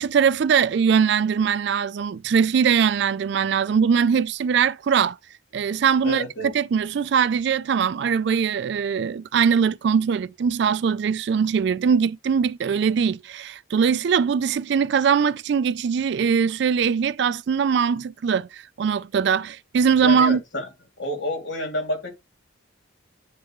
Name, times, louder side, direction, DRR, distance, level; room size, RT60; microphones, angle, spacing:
voice 1, 0.0-5.2 5.5-20.4, right 6 dB, 55° right, 0.3 m, -21 dB
voice 2, 6.0-6.5 20.0-20.7 21.0-22.1, left 1 dB, 65° left, 2.7 m, -29 dB
10.0 x 3.4 x 3.0 m
head